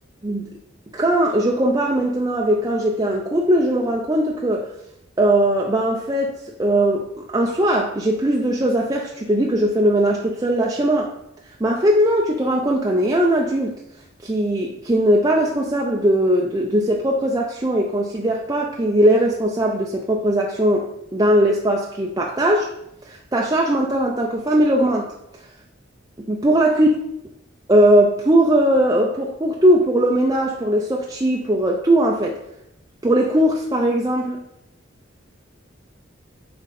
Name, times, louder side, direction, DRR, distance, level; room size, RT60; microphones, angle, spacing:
voice 1, 0.9-4.7 5.2-11.1 11.6-13.8 14.2-22.7 23.1-25.1 26.3-26.9 27.7-32.4 33.0-34.4, right 1 dB, 20° right, 0 dB, 0.5 m, -19 dB
7.2 x 4.3 x 4.2 m, 0.79 s
head